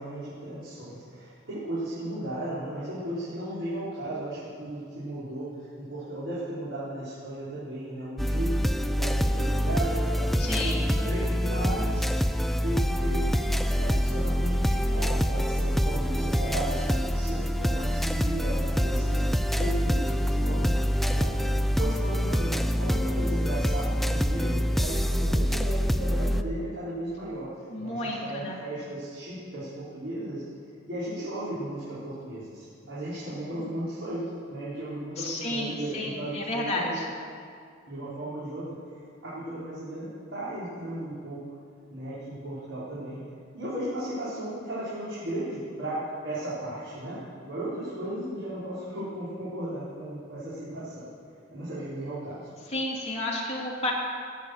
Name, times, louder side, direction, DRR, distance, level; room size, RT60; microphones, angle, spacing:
voice 1, 0.0-12.4 12.6-20.7 21.0-21.3 21.7-27.5 27.8-30.4 30.9-34.2 34.5-37.0 37.9-38.8 39.2-41.4 41.9-43.2 43.5-51.1 51.5-52.5, right 1 dB, 90° right, -11 dB, 4.8 m, -35 dB
sound 1, 8.2-26.4, equal, ahead, 0.4 m, -26 dB
voice 2, 10.4-10.9 27.7-28.6 35.2-37.1 52.6-53.9, left 1 dB, 35° left, -3 dB, 2.9 m, -31 dB
19.5 x 8.5 x 6.5 m, 2.2 s
head